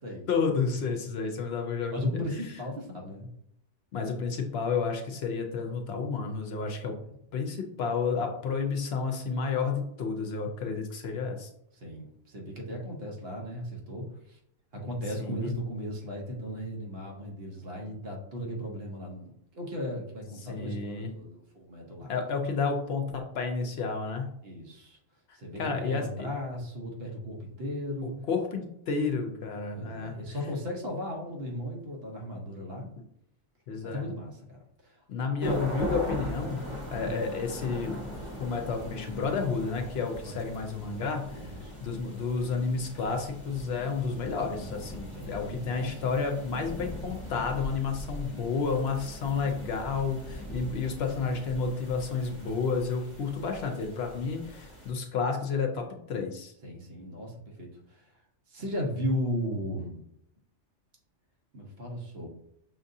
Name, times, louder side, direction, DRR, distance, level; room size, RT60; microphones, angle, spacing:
voice 1, 0.3-2.2 3.9-6.9 7.3-11.5 15.2-15.5 20.4-21.1 22.1-24.3 25.6-26.3 28.3-30.2 33.7-34.0 35.1-36.6 36.9-38.0 38.4-41.5 41.8-56.5, left 5 dB, 65° left, 4 dB, 0.8 m, -31 dB
voice 2, 1.9-3.3 7.0-7.1 11.7-14.4 14.7-22.1 24.4-25.0 25.3-28.1 29.7-32.9 33.8-35.0 35.4-35.8 37.0-37.2 40.2-40.4 41.3-41.8 45.1-46.0 56.6-58.0 58.5-60.0 61.5-62.3, equal, 60° right, 0 dB, 1.1 m, -36 dB
sound 1, 35.4-54.9, equal, 25° left, 1.0 m, -40 dB
5.7 x 2.5 x 2.6 m, 0.75 s
omnidirectional pair, 1.2 m